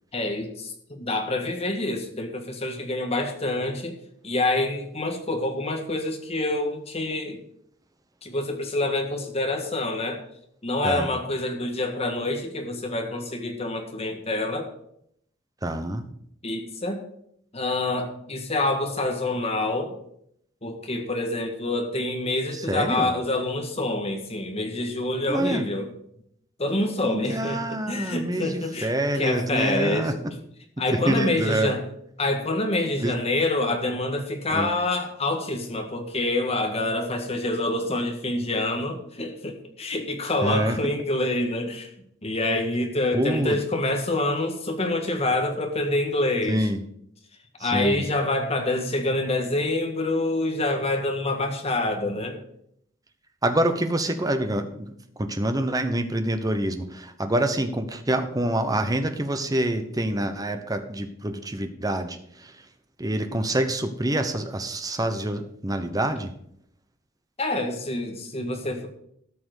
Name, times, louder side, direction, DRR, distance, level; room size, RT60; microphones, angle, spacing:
voice 1, 0.1-3.9 4.2-7.4 8.2-10.2 10.6-14.7 16.4-17.0 17.5-20.0 20.6-25.9 26.6-30.1 30.8-31.8 32.2-41.9 42.2-46.7 47.6-52.4 67.4-68.9, left 2 dB, 30° left, 4 dB, 1.7 m, -27 dB
voice 2, 15.6-16.1 22.5-23.1 25.3-25.7 27.0-30.2 30.9-31.7 33.0-33.1 34.5-34.7 40.4-40.9 43.1-43.6 46.5-46.8 47.6-48.0 53.4-62.6 63.0-66.3, right 1 dB, 20° right, 8 dB, 1.0 m, -26 dB
13.5 x 5.9 x 6.5 m, 0.71 s
head